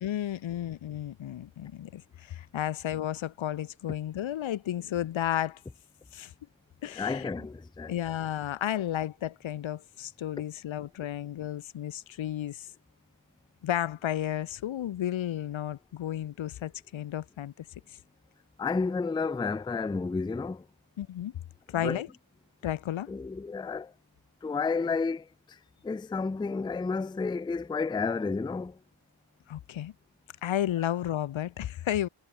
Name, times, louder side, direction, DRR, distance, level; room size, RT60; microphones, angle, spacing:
voice 1, 0.0-5.6 6.1-6.3 6.8-7.3 7.9-12.7 13.6-17.5 21.0-21.3 21.7-22.1 22.6-23.1 29.5-29.9 30.4-32.1, left 11 dB, 75° left, 0.5 m, -32 dB
voice 2, 7.0-8.0 18.6-20.7 21.7-22.0 23.1-23.9 24.4-25.6 25.8-28.8, left 4 dB, 10° left, 0.3 m, -31 dB
wide cardioid pair, 55°, 47 cm